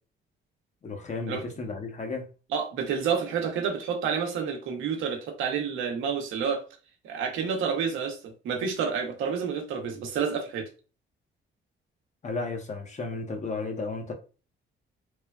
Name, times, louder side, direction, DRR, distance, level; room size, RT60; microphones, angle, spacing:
voice 1, 0.8-2.3 12.2-14.1, left 3 dB, 35° left, 0.7 m, -33 dB
voice 2, 2.5-6.6 7.0-10.7, right 6 dB, 90° right, 0.7 m, -29 dB
3.1 x 2.1 x 2.3 m
cardioid pair, 90°, 20 cm